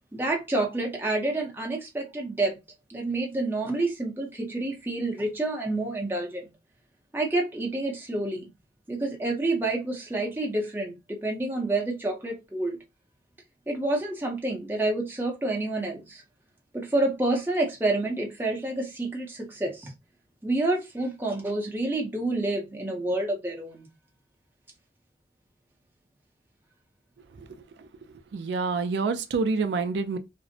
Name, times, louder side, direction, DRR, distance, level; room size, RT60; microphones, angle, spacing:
voice 1, 0.1-2.6 2.9-6.5 7.1-8.5 8.9-12.8 13.7-16.2 16.7-19.9 20.4-23.9, right 2 dB, 10° right, 0.6 m, -28 dB
voice 2, 28.3-30.2, right 4 dB, 85° right, 0.4 m, -27 dB
2.5 x 2.0 x 2.6 m
head